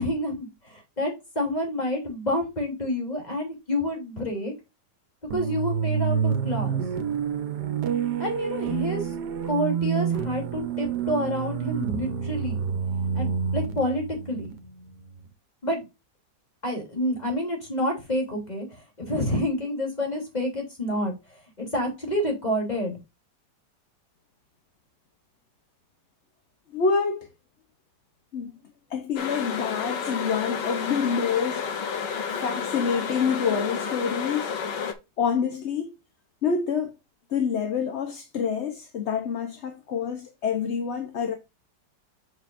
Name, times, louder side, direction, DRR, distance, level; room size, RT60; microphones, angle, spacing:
voice 1, 0.0-4.5 5.3-6.8 8.2-9.1 9.4-12.6 13.1-14.5 15.6-15.8 16.6-23.0, left 1 dB, 25° left, 3.1 m, -28 dB
sound 1, 5.3-15.2, right 7 dB, 70° right, 1.4 m, -28 dB
voice 2, 26.7-27.3 28.3-28.5 28.9-31.7 32.3-34.6 35.2-35.9 36.4-36.9 37.3-41.3, left 6 dB, 50° left, 1.0 m, -27 dB
sound 2, 29.2-34.9, left 6 dB, 90° left, 1.7 m, -31 dB
7.3 x 6.4 x 2.5 m
omnidirectional pair, 1.9 m